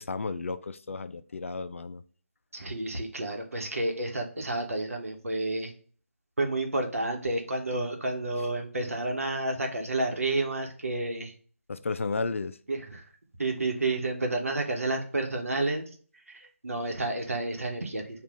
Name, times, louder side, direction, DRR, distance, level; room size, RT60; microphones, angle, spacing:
voice 1, 0.0-2.0 11.7-12.6, left 4 dB, 65° left, 0.4 m, -33 dB
voice 2, 2.5-5.7 6.4-11.3 12.7-13.0 13.4-15.9 16.3-18.2, right 2 dB, 75° right, 1.0 m, -30 dB
6.8 x 2.4 x 2.4 m
figure-of-eight pair, 155°, 8 cm